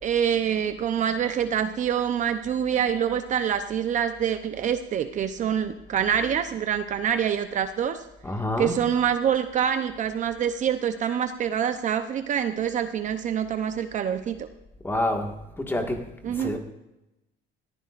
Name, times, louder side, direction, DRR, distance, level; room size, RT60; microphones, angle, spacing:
voice 1, 0.0-8.0 8.6-14.5 16.2-16.5, right 8 dB, 40° right, 8 dB, 0.7 m, -26 dB
voice 2, 8.2-8.9 14.8-16.0 16.3-16.6, left 1 dB, 10° left, 3 dB, 1.8 m, -28 dB
21.0 x 14.5 x 2.5 m, 0.93 s
cardioid pair, 145°, 19 cm